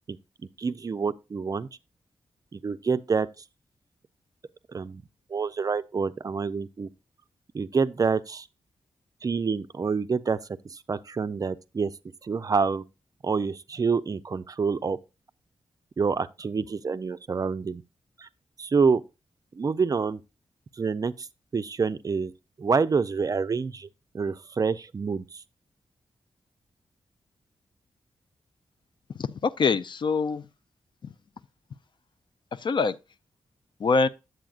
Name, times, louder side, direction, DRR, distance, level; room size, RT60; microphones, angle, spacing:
voice 1, 0.6-1.7 2.5-3.3 4.7-5.0 5.3-6.9 7.5-8.5 9.2-10.4 10.6-11.9 12.2-12.8 13.2-15.0 16.0-17.8 18.2-18.3 18.6-19.0 19.5-20.2 20.7-21.3 21.5-22.3 22.6-23.9 24.1-25.4, right 5 dB, 35° right, 0.4 m, -27 dB
voice 2, 29.1-30.5 32.5-33.0 33.8-34.1, left 4 dB, 50° left, 0.4 m, -24 dB
9.0 x 7.8 x 2.4 m
wide cardioid pair, 95°, 10 cm